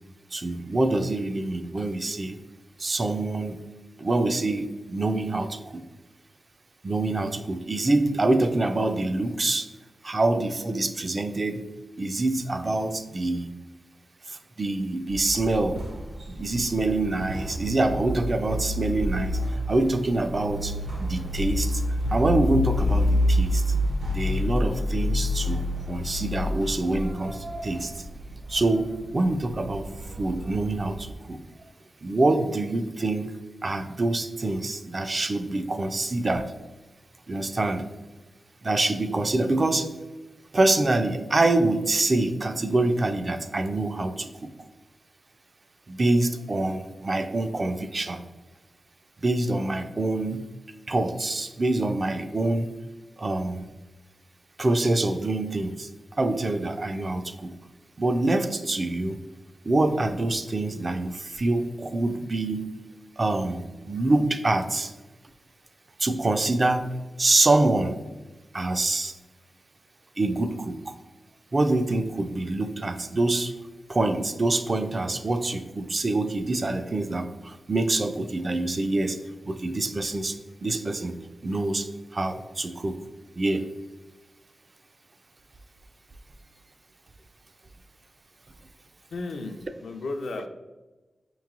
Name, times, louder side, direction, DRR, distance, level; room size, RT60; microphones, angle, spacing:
voice 1, 0.3-2.4 2.8-3.6 4.0-5.8 6.8-9.7 10.0-11.6 12.0-13.5 14.3-15.8 16.3-20.7 21.0-21.8 22.1-23.6 24.1-28.0 28.5-29.9 30.2-31.4 32.0-33.3 33.6-36.5 37.3-37.9 38.6-39.9 40.5-44.5 45.9-48.2 49.2-50.4 50.9-52.7 53.2-53.7 54.6-55.9 56.2-57.5 58.0-59.2 59.6-62.7 63.2-64.9 66.0-68.0 68.5-69.1 70.2-70.9 71.5-73.5 73.9-79.2 79.4-81.1 81.4-83.0 83.4-83.7, right 2 dB, 40° right, 8 dB, 0.3 m, -25 dB
sound 1, 15.1-31.1, left 1 dB, 90° right, 1.4 m, -29 dB
voice 2, 89.1-90.5, left 3 dB, 80° left, 5 dB, 0.4 m, -34 dB
5.1 x 3.0 x 2.4 m, 1.1 s
wide cardioid pair, 85°, 0 cm